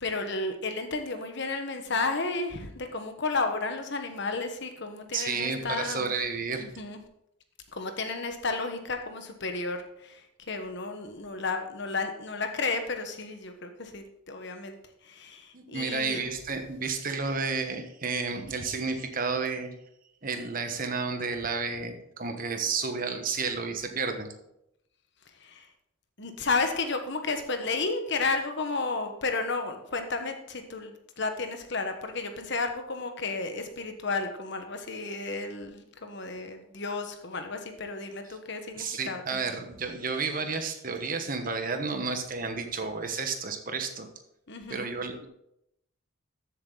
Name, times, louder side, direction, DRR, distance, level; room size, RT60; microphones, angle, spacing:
voice 1, 0.0-6.1 6.6-7.0 7.7-10.2 10.5-14.7 15.1-16.2 25.4-25.6 26.2-39.2 44.5-44.9, left 3 dB, 55° left, 6 dB, 1.3 m, -32 dB
voice 2, 5.1-6.6 15.5-19.7 20.2-24.3 38.3-38.4 38.8-44.1 44.7-45.3, right 4 dB, 40° right, 6 dB, 1.3 m, -31 dB
13.5 x 7.6 x 4.0 m, 0.80 s
head